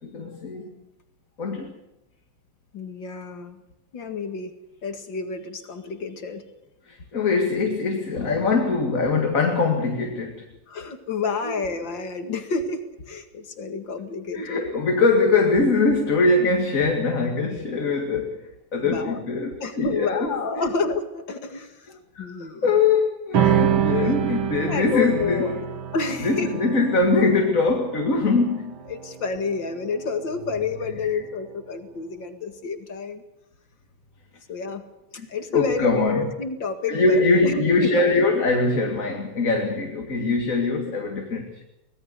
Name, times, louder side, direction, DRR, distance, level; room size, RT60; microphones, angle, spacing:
voice 1, 0.0-0.8 1.4-1.7 6.9-10.5 11.4-11.5 14.3-18.4 18.7-20.3 22.1-25.6 26.2-28.8 31.0-31.1 35.2-35.3 35.5-36.3 36.9-41.6, left 3 dB, 40° left, 2 dB, 2.4 m, -22 dB
voice 2, 2.7-3.6 3.9-4.5 4.8-6.4 10.7-14.7 18.8-19.2 19.6-22.7 24.0-24.1 24.6-25.6 25.9-26.6 28.9-33.2 34.5-34.8 35.3-38.0, left 4 dB, 60° left, 7 dB, 2.7 m, -29 dB
sound 1, 23.3-30.1, right 9 dB, 70° right, 2.6 m, -26 dB
24.0 x 19.0 x 6.7 m, 0.94 s
omnidirectional pair, 2.4 m